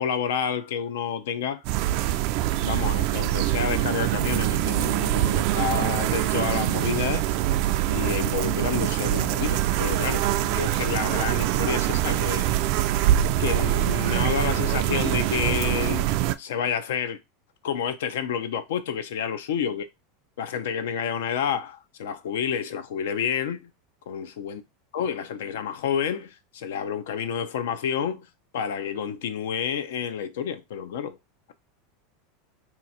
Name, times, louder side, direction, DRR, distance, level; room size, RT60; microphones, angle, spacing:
voice 1, 0.0-1.6 2.6-7.2 7.9-12.5 13.4-16.1 16.4-17.2 17.6-19.9 20.4-23.7 24.1-24.6 24.9-28.3 28.5-31.2, left 8 dB, 85° left, 0.6 m, -29 dB
sound 1, 1.7-16.4, right 14 dB, 55° right, 0.3 m, -24 dB
2.9 x 2.4 x 4.0 m
supercardioid pair, 135°, 0 cm